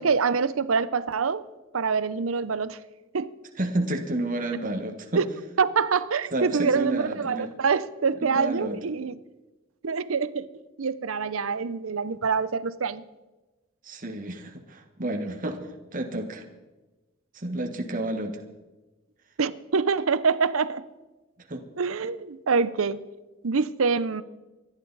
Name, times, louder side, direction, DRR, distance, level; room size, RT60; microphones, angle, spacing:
voice 1, 0.0-1.5 1.7-2.8 3.1-3.3 5.2-5.3 5.6-9.1 9.8-10.5 10.8-13.0 19.4-20.9 21.8-23.0 23.4-24.2, right 5 dB, 80° right, 0.7 m, -25 dB
voice 2, 3.6-5.2 6.3-7.5 8.2-8.8 13.8-16.4 17.3-18.4 21.5-21.6, right 1 dB, 40° right, 1.3 m, -30 dB
26.5 x 11.5 x 4.0 m
head